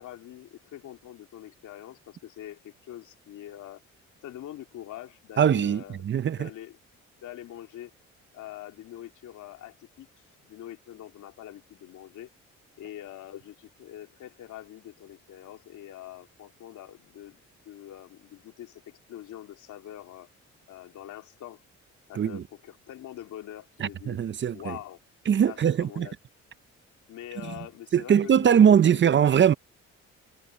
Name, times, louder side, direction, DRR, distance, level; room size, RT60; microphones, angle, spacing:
voice 1, 0.0-3.8 4.2-6.1 6.4-6.8 7.2-7.9 8.3-12.3 12.8-20.3 20.7-21.6 22.1-24.2 24.5-25.0 25.4-26.1 27.1-29.0, left 12 dB, 80° left, 2.6 m, -44 dB
voice 2, 5.4-6.5 22.2-22.4 23.8-24.7 25.3-26.1 27.9-29.5, right 8 dB, 40° right, 0.6 m, -21 dB
cardioid pair, 90°, 30 cm